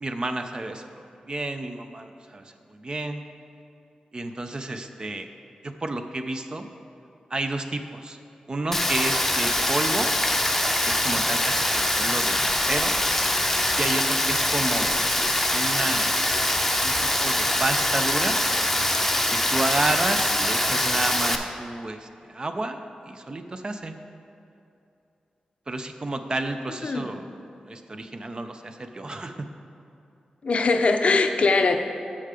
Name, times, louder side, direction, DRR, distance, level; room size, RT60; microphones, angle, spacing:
voice 1, 0.0-3.2 4.1-5.3 5.6-6.6 7.3-8.2 8.5-10.1 10.9-12.9 13.8-15.0 15.5-18.4 19.3-23.9 25.7-27.2 27.7-29.5, right 2 dB, 35° right, 7 dB, 0.5 m, -31 dB
Rain, 8.7-21.4, left 1 dB, 10° left, 0.7 m, -23 dB
voice 2, 30.4-31.8, left 3 dB, 55° left, 6 dB, 0.6 m, -21 dB
8.5 x 5.6 x 4.9 m, 2.7 s
cardioid pair, 75°, 3 cm